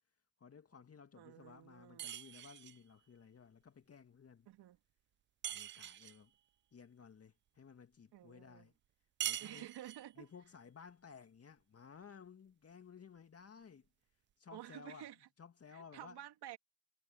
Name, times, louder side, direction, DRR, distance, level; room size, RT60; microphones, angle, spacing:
voice 1, 0.4-4.5 5.5-6.3 6.7-8.7 9.2-9.7 10.2-13.9 14.4-16.2, left 6 dB, 30° left, 2.1 m, -57 dB
voice 2, 1.2-2.0 4.5-4.8 8.1-8.7 9.4-10.3 14.5-15.1 15.7-16.6, right 12 dB, 55° right, 2.6 m, -51 dB
sound 1, 2.0-2.8 5.4-6.2 9.2-10.1, right 11 dB, 25° right, 0.4 m, -43 dB
hypercardioid pair, 65°, 47 cm